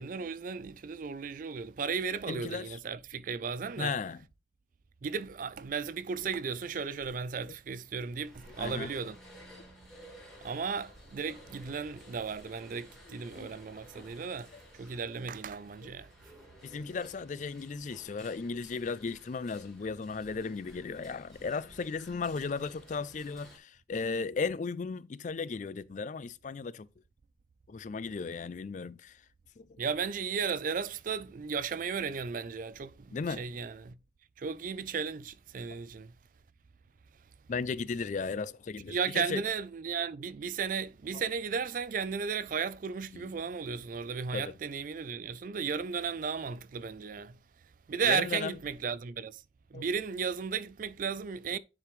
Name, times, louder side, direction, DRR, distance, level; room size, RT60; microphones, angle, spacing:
voice 1, 0.0-3.9 5.0-9.2 10.4-14.5 14.8-16.1 29.8-34.0 34.4-36.1 38.9-47.4 47.9-49.4 49.7-51.6, right 6 dB, 45° right, 0.3 m, -35 dB
voice 2, 2.3-2.8 3.8-4.2 8.6-8.9 13.1-13.5 16.6-26.9 27.7-29.2 29.6-29.8 33.1-33.4 37.5-39.4 41.1-41.2 43.1-43.3 44.3-44.5 48.0-48.6 49.7-49.8, left 4 dB, 40° left, 0.3 m, -36 dB
sound 1, 8.2-23.6, equal, ahead, 2.4 m, -54 dB
9.9 x 4.9 x 3.1 m
head